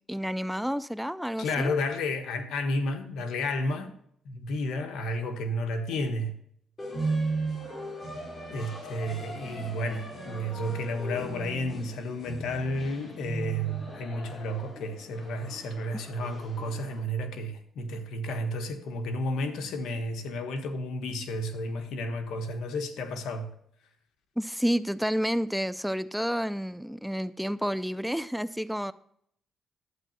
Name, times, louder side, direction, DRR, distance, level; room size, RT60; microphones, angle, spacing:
voice 1, 0.1-1.7 24.4-28.9, equal, ahead, 0.4 m, -30 dB
voice 2, 1.4-3.9 4.2-6.4 8.5-23.5, left 1 dB, 80° left, 1.3 m, -32 dB
sound 1, 6.8-17.0, right 2 dB, 35° left, 4.1 m, -37 dB
11.5 x 8.9 x 2.9 m
cardioid pair, 90°, 0 cm